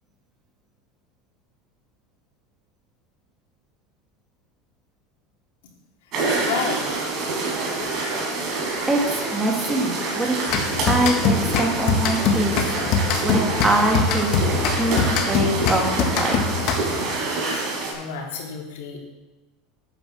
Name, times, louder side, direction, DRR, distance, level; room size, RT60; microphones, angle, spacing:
voice 1, 6.0-6.9 7.3-7.8 17.4-19.0, left 6 dB, 85° left, -1 dB, 3.4 m, -33 dB
sound 1, 6.1-17.9, right 3 dB, 45° right, 4.4 m, -26 dB
voice 2, 8.9-10.4 10.9-12.7 13.2-14.3 14.7-16.6, right 1 dB, 10° right, 0 dB, 2.3 m, -24 dB
sound 2, 10.5-17.1, left 5 dB, 50° left, 1.6 m, -23 dB
9.7 x 9.1 x 6.4 m, 1.1 s
supercardioid pair, 145°, 0 cm